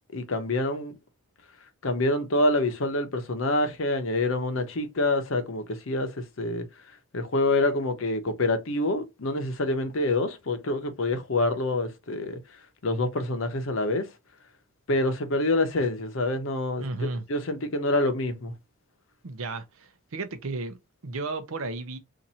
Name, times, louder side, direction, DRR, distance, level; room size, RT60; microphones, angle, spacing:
voice 1, 0.1-0.9 1.8-6.6 7.1-12.4 12.8-14.1 14.9-16.8 17.3-18.5, left 2 dB, 70° left, 0.8 m, -26 dB
voice 2, 16.8-17.2 19.2-22.0, right 3 dB, 80° right, 0.6 m, -34 dB
2.8 x 2.5 x 4.0 m
head